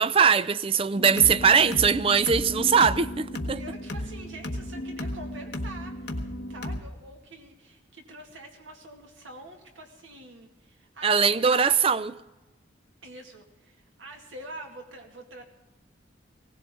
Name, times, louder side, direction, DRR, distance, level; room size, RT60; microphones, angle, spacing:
voice 1, 0.0-3.6 11.0-12.1, right 6 dB, 30° right, 0.4 m, -21 dB
sound 1, 0.9-6.8, left 1 dB, 60° left, 1.3 m, -34 dB
voice 2, 3.5-11.8 13.0-15.4, right 2 dB, 85° right, 2.3 m, -45 dB
19.5 x 17.5 x 3.8 m
head